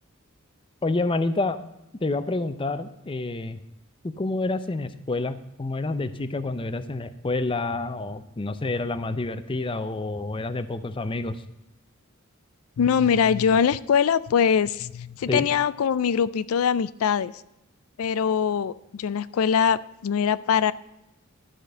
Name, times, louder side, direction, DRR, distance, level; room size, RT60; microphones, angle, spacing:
voice 1, 0.8-1.6 2.0-3.6 4.0-11.4 15.3-15.5, left 2 dB, 25° left, 12 dB, 0.5 m, -28 dB
voice 2, 12.8-17.3 18.0-20.7, left 7 dB, 90° left, 16 dB, 0.4 m, -22 dB
12.5 x 5.1 x 7.7 m, 0.88 s
head